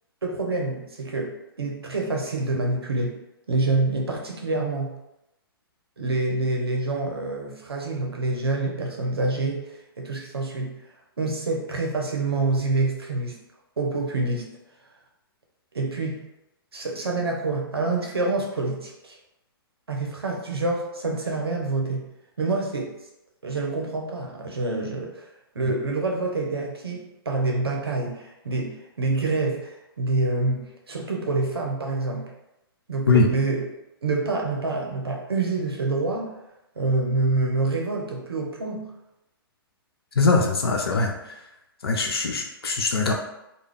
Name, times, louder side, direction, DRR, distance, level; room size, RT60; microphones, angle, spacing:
voice 1, 0.2-3.2 3.5-4.9 6.0-10.8 11.2-13.4 13.8-14.5 15.7-16.3 16.7-19.2 19.9-22.1 22.4-22.9 23.4-25.3 25.5-32.3 32.9-33.6 34.0-36.3 36.8-38.9, right 3 dB, 90° right, 0 dB, 0.7 m, -27 dB
voice 2, 40.2-41.1 41.8-43.1, left 3 dB, 85° left, 2 dB, 0.4 m, -21 dB
2.3 x 2.2 x 3.3 m, 0.89 s
hypercardioid pair, 120°, 13 cm